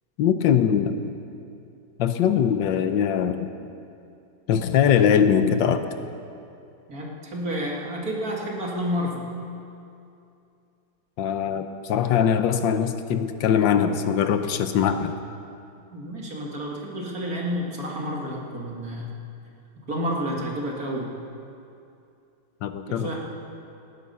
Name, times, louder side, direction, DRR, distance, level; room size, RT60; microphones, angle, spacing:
voice 1, 0.2-1.0 2.0-3.5 4.5-5.8 11.2-15.2 22.6-23.1, left 8 dB, 75° left, 9 dB, 1.5 m, -21 dB
voice 2, 6.9-9.3 15.9-19.2 19.9-21.1 22.9-23.1, equal, 50° right, -2 dB, 2.6 m, -30 dB
19.0 x 12.5 x 5.6 m, 2.6 s
omnidirectional pair, 2.1 m